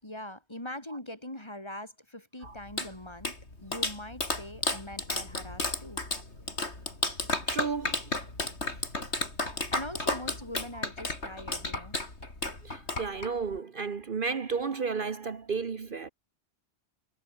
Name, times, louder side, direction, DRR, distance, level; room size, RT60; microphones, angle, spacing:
voice 1, 0.0-6.0 9.7-12.0, left 1 dB, 25° left, 4.3 m, -42 dB
Clapping, 2.4-13.6, left 2 dB, 90° left, 5.2 m, -33 dB
voice 2, 7.5-8.1 12.6-16.1, right 5 dB, 55° right, 1.2 m, -33 dB
omnidirectional pair, 1.1 m